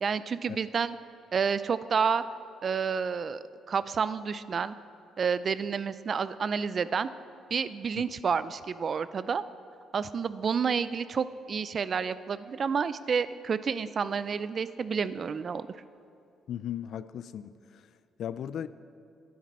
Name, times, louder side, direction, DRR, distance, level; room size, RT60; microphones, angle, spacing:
voice 1, 0.0-1.0 1.3-2.2 2.6-3.4 3.7-4.8 5.2-7.1 7.5-9.4 9.9-15.7, right 6 dB, 45° right, 15 dB, 0.3 m, -29 dB
voice 2, 16.5-17.8 18.2-18.7, left 10 dB, 70° left, 15 dB, 0.3 m, -37 dB
12.0 x 9.4 x 4.3 m, 2.5 s
cardioid pair, 90°, 0 cm